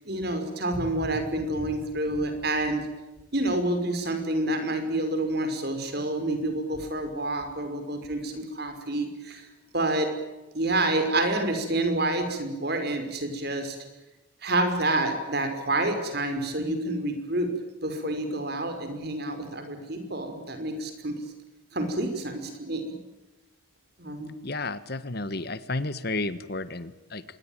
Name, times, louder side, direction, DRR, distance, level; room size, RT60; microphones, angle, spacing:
voice 1, 0.0-2.9 3.3-9.5 9.7-10.1 10.5-13.8 14.4-17.5 17.8-21.1 21.7-23.0 24.0-24.3, right 1 dB, 50° right, 7 dB, 5.6 m, -28 dB
voice 2, 24.4-27.2, left 2 dB, 50° left, 14 dB, 1.5 m, -32 dB
26.0 x 21.5 x 9.1 m, 1.1 s
head